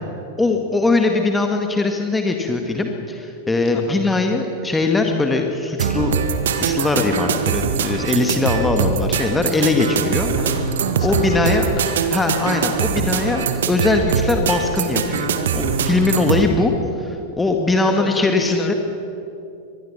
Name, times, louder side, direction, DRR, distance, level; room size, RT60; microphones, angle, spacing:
voice 1, 0.4-6.2 6.5-10.3 11.0-11.6 12.1-16.7 17.0-18.7, left 3 dB, 10° left, 3 dB, 1.9 m, -20 dB
sound 1, 5.8-16.5, right 6 dB, 60° right, 1.5 m, -22 dB
voice 2, 10.2-10.6 11.0-11.3 11.8-12.0 17.8-18.7, left 5 dB, 30° left, 6 dB, 2.1 m, -34 dB
25.0 x 20.5 x 5.9 m, 2.7 s
figure-of-eight pair, 90°, 0 cm